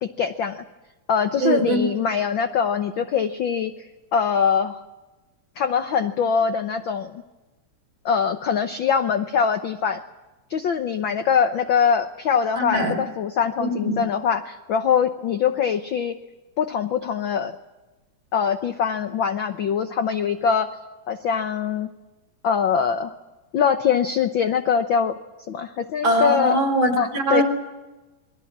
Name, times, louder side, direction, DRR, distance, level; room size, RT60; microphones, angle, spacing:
voice 1, 0.0-0.6 1.1-3.9 4.1-4.8 5.6-7.2 8.0-10.0 10.5-16.2 16.6-17.6 18.3-20.7 21.1-21.9 22.4-23.1 23.5-25.1 25.5-26.6 27.0-27.4, left 7 dB, 65° left, 9 dB, 1.2 m, -23 dB
voice 2, 1.4-1.8 12.6-13.0 13.6-14.0 26.0-27.4, right 1 dB, 60° right, 4 dB, 5.5 m, -21 dB
28.0 x 22.5 x 7.4 m, 1.1 s
omnidirectional pair, 3.3 m